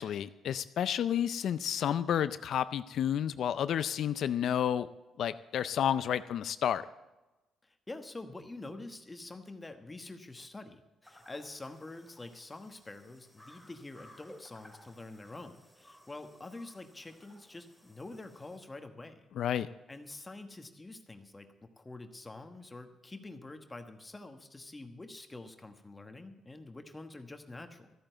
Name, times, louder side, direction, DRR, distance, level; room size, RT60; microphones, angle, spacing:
voice 1, 0.0-4.9 5.2-6.8 19.4-19.7, left 9 dB, 70° left, 13 dB, 0.4 m, -31 dB
voice 2, 7.6-19.3 19.9-27.9, left 2 dB, 20° left, 7 dB, 1.2 m, -47 dB
sound 1, 11.0-18.6, left 1 dB, ahead, 2.2 m, -58 dB
13.5 x 8.9 x 7.8 m, 1.1 s
cardioid pair, 90°, 0 cm